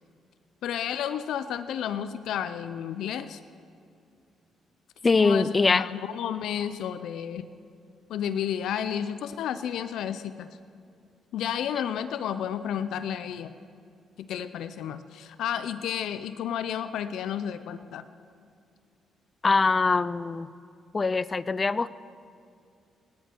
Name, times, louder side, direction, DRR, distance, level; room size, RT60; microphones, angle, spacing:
voice 1, 0.6-3.4 5.2-7.5 8.1-10.5 11.3-13.5 14.2-18.0, left 9 dB, 80° left, 12 dB, 0.5 m, -31 dB
voice 2, 5.0-5.8 19.4-20.5 20.9-21.9, left 4 dB, 30° left, 16 dB, 0.4 m, -23 dB
29.5 x 10.0 x 4.5 m, 2.4 s
cardioid pair, 90°, 0 cm